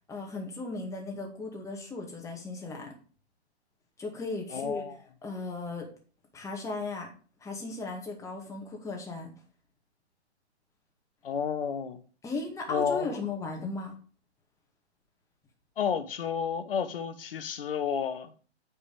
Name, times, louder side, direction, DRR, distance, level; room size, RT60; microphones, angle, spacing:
voice 1, 0.1-2.9 4.0-4.8 5.2-5.9 6.3-7.1 7.4-9.3 12.2-13.9, left 3 dB, 10° left, 2.0 m, -36 dB
voice 2, 4.5-5.0 11.2-12.0 12.7-13.1 13.6-13.7 15.8-18.3, left 7 dB, 55° left, 1.3 m, -31 dB
8.7 x 5.4 x 5.2 m
figure-of-eight pair, 130°, 34 cm